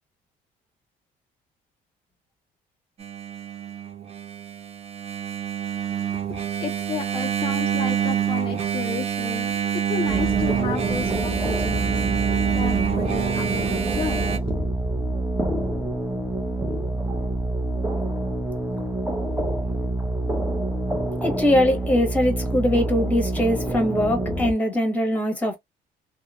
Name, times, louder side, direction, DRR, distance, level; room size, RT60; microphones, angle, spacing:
Engine, 3.0-14.4, right 9 dB, 40° right, 0.6 m, -26 dB
voice 1, 5.9-14.6, left 7 dB, 30° left, 0.4 m, -34 dB
sound 1, 10.1-24.5, right 1 dB, 10° right, 0.7 m, -27 dB
voice 2, 21.2-25.6, left 1 dB, 10° left, 1.2 m, -22 dB
2.8 x 2.0 x 2.3 m
cardioid pair, 110°, 17 cm